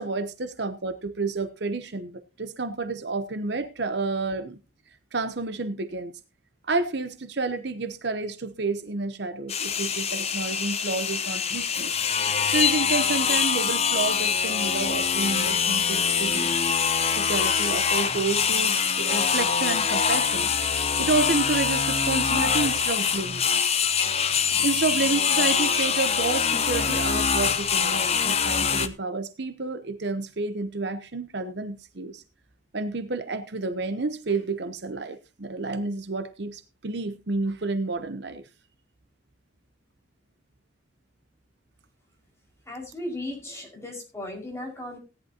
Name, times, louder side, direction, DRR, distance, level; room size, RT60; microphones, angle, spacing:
voice 1, 0.0-4.6 5.1-6.1 6.7-11.9 12.5-16.6 17.1-23.4 24.6-32.2 32.7-38.4, right 3 dB, 55° right, 10 dB, 0.9 m, -30 dB
sound 1, 9.5-28.9, left 6 dB, 30° left, 0.8 m, -24 dB
voice 2, 42.6-45.0, left 1 dB, 15° left, -1 dB, 5.3 m, -36 dB
17.0 x 11.0 x 2.9 m, 0.29 s
head